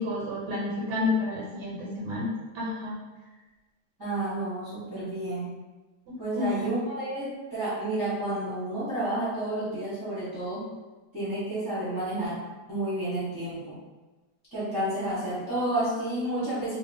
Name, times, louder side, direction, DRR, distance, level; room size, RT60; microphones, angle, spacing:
voice 1, 0.0-3.0 6.1-6.7, left 3 dB, 85° right, -4 dB, 1.3 m, -30 dB
voice 2, 4.0-5.5 6.2-10.7 11.1-12.4 12.7-13.8 14.5-16.8, right 1 dB, 20° right, -12 dB, 0.6 m, -30 dB
2.8 x 2.1 x 2.5 m, 1.2 s
omnidirectional pair, 1.8 m